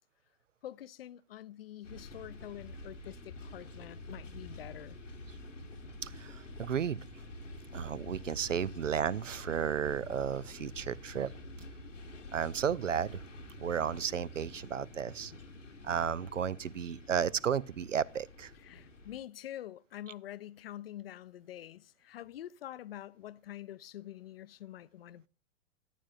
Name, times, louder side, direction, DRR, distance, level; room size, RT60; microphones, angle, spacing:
voice 1, 0.6-5.0 18.5-25.3, left 12 dB, 50° left, 0.5 m, -46 dB
sound 1, 1.8-19.2, left 1 dB, 85° left, 1.3 m, -48 dB
voice 2, 6.0-7.0 7.7-11.3 12.3-13.2 13.6-15.3 15.8-18.5, right 8 dB, 85° right, 0.5 m, -33 dB
14.0 x 9.2 x 2.4 m
figure-of-eight pair, 110°, 37 cm